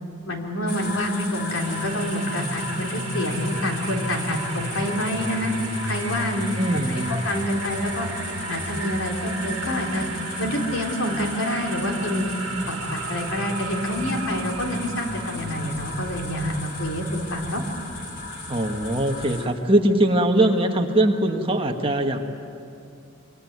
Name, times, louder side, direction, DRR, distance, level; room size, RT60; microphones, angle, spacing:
voice 1, 0.3-5.5 5.9-6.5 6.9-8.1 8.5-10.1 10.4-12.3 12.7-17.6, left 1 dB, 80° left, 1 dB, 3.7 m, -27 dB
sound 1, 0.7-19.5, left 2 dB, 45° left, 4.2 m, -36 dB
sound 2, 1.5-19.4, right 2 dB, 75° right, 1.9 m, -35 dB
voice 2, 6.6-7.3 18.5-22.3, right 1 dB, 25° right, 3 dB, 1.6 m, -21 dB
25.0 x 24.5 x 9.5 m, 2.7 s
head